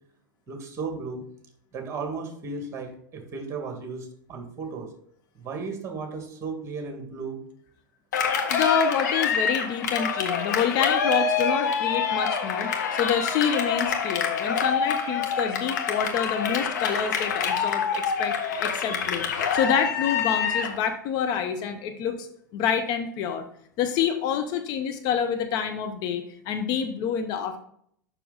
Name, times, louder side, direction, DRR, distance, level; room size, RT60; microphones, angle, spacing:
voice 1, 0.5-1.2 1.7-4.9 5.4-7.4, right 4 dB, 25° right, 3 dB, 1.8 m, -35 dB
Cheering, 8.1-20.8, left 6 dB, 60° left, 1.3 m, -26 dB
voice 2, 8.5-19.3 19.5-22.3 22.5-23.5 23.8-27.6, left 7 dB, 40° left, 7 dB, 0.7 m, -27 dB
6.9 x 6.0 x 3.8 m, 0.66 s
figure-of-eight pair, 90°, 11 cm